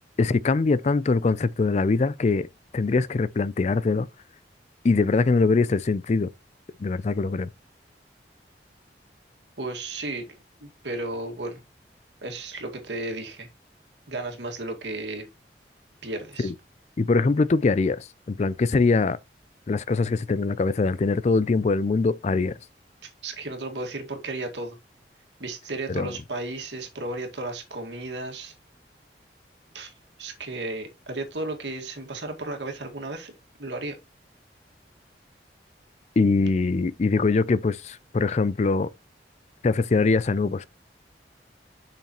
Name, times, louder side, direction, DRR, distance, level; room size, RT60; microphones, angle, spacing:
voice 1, 0.2-2.5 2.7-4.1 4.8-6.3 6.8-7.5 16.4-16.5 17.0-19.2 19.7-22.5 25.9-26.1 36.2-38.9 39.6-40.6, left 3 dB, 40° left, 0.4 m, -22 dB
voice 2, 9.6-11.6 12.2-13.5 14.1-15.3 16.0-16.5 23.0-24.8 25.4-28.5 29.7-29.9 30.2-33.3 33.6-34.0, right 2 dB, 85° right, 1.9 m, -34 dB
7.1 x 5.8 x 3.0 m
head